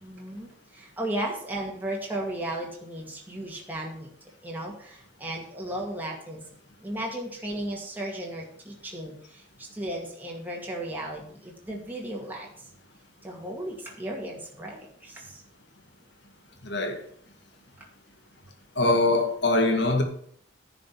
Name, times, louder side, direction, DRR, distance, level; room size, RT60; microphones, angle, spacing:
voice 1, 0.0-4.1 4.4-6.4 6.8-12.5 13.2-15.4, right 1 dB, 10° right, 2.1 m, -35 dB
voice 2, 16.6-17.0 18.8-20.0, left 2 dB, 65° left, 2.1 m, -23 dB
10.5 x 5.1 x 8.3 m
head